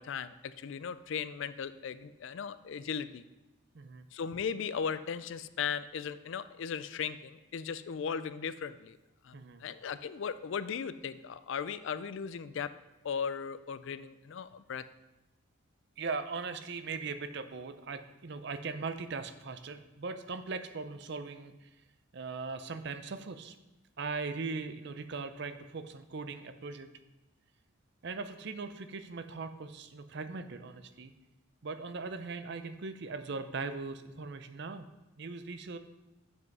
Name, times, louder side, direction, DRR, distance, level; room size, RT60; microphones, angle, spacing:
voice 1, 0.0-3.2 4.1-9.0 9.2-12.7 13.0-14.8, left 6 dB, 60° left, 14 dB, 0.4 m, -37 dB
voice 2, 3.7-4.1 9.3-9.6 16.0-21.8 22.1-23.6 24.0-26.9 28.0-31.1 31.6-34.9 35.2-35.8, right 4 dB, 55° right, 10 dB, 0.5 m, -39 dB
7.9 x 5.4 x 5.3 m, 1.0 s
head